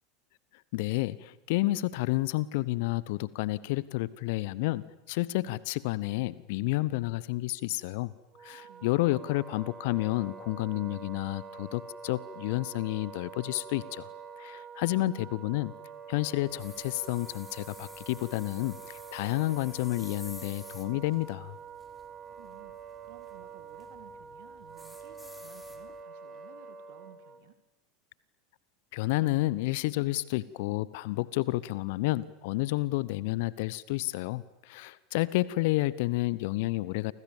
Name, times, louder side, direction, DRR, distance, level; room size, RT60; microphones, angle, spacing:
voice 1, 0.5-8.1 8.4-14.1 14.4-15.7 16.1-21.6 28.9-37.1, left 19 dB, 55° left, 20 dB, 0.9 m, -30 dB
Wind instrument woodwind instrument, 8.3-27.4, right 6 dB, 25° right, 2.6 m, -46 dB
sound 1, 16.5-26.0, left 3 dB, 10° left, 3.2 m, -53 dB
voice 2, 22.3-27.6, right 12 dB, 55° right, 10 dB, 2.2 m, -56 dB
29.5 x 25.0 x 7.3 m, 1.1 s
figure-of-eight pair, 80°, 0 cm